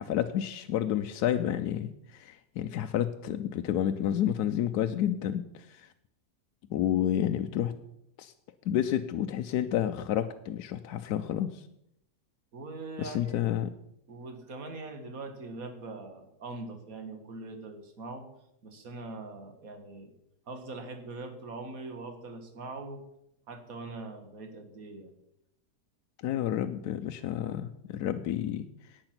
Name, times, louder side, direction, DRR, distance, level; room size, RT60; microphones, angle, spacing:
voice 1, 0.0-5.9 6.7-7.7 8.2-8.3 8.6-11.6 13.0-13.7 26.2-28.7, left 11 dB, 75° left, 8 dB, 1.1 m, -30 dB
voice 2, 12.5-13.7 14.1-18.3 18.6-20.1 20.5-23.0 23.5-25.1, right 3 dB, 55° right, 6 dB, 1.9 m, -42 dB
10.5 x 8.8 x 6.0 m, 0.80 s
omnidirectional pair, 1.8 m